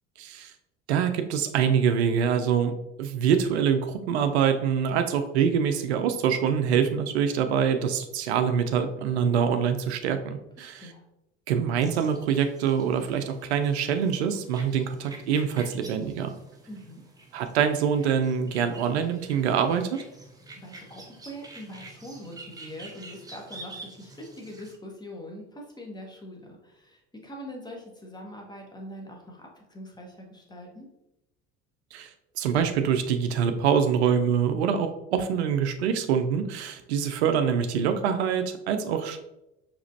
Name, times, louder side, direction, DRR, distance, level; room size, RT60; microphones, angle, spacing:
voice 1, 0.2-0.5 0.9-2.7 3.0-10.8 11.5-16.3 17.3-20.0 31.9-32.1 32.4-39.4, right 7 dB, 65° right, 8 dB, 0.6 m, -25 dB
voice 2, 10.6-11.0 16.7-17.0 20.5-30.9, equal, 10° left, 0 dB, 1.1 m, -43 dB
sound 1, 11.8-24.8, right 2 dB, 10° right, 0.6 m, -48 dB
4.9 x 3.4 x 2.7 m, 0.89 s
figure-of-eight pair, 65°, 36 cm